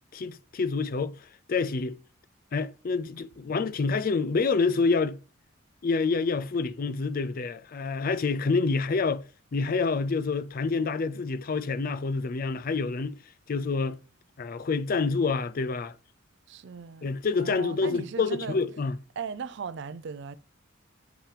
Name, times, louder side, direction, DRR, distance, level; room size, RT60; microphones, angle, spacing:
voice 1, 0.1-2.0 2.5-5.2 5.8-9.2 9.5-13.2 13.5-14.0 14.4-15.9 17.0-19.0, left 4 dB, 45° left, 0.4 m, -27 dB
voice 2, 16.5-18.6 19.2-20.4, right 5 dB, 60° right, 0.4 m, -38 dB
7.2 x 5.7 x 3.3 m
head